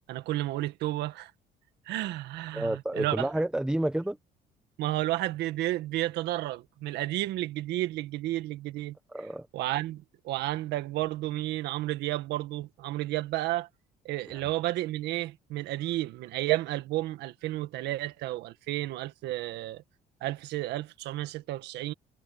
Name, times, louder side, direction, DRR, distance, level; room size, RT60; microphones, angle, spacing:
voice 1, 0.1-1.3 1.9-3.3 4.8-9.0 9.5-13.7 14.1-19.8 20.2-21.9, right 16 dB, 85° right, 1.7 m, -32 dB
voice 2, 2.5-4.2 9.1-9.5 14.3-14.4, right 1 dB, 5° right, 1.0 m, -30 dB
cardioid pair, 110°, 17 cm